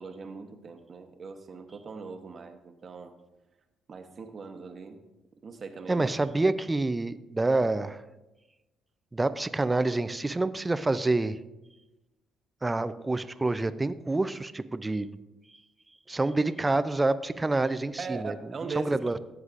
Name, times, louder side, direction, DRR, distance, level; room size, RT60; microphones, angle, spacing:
voice 1, 0.0-3.1 3.9-5.0 5.4-6.1 18.0-19.2, right 5 dB, 45° right, 7 dB, 1.0 m, -40 dB
voice 2, 5.9-8.0 9.1-11.4 12.6-15.1 16.1-18.4 18.8-19.2, right 2 dB, 20° right, 13 dB, 0.4 m, -27 dB
14.5 x 8.0 x 2.5 m, 1.0 s
supercardioid pair, 70°, 0 cm